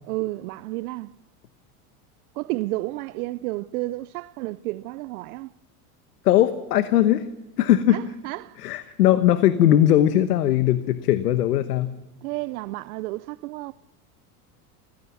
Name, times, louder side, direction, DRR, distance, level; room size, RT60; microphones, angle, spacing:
voice 1, 0.1-1.2 2.3-5.5 7.9-8.6 8.8-8.9 12.2-13.7, right 19 dB, 70° right, 0.6 m, -31 dB
voice 2, 6.2-7.3 7.6-8.0 8.6-11.9, left 12 dB, 85° left, 1.1 m, -19 dB
26.5 x 16.0 x 7.1 m
hypercardioid pair, 100°, 46 cm